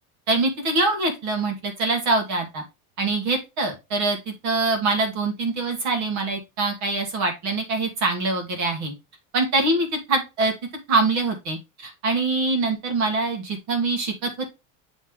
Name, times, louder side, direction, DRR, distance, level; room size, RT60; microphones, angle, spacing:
voice 1, 0.3-2.6 3.0-8.9 9.3-10.5 10.9-14.5, right 3 dB, 40° right, 4 dB, 1.6 m, -24 dB
9.6 x 3.2 x 3.6 m, 0.25 s
cardioid pair, 170°, 42 cm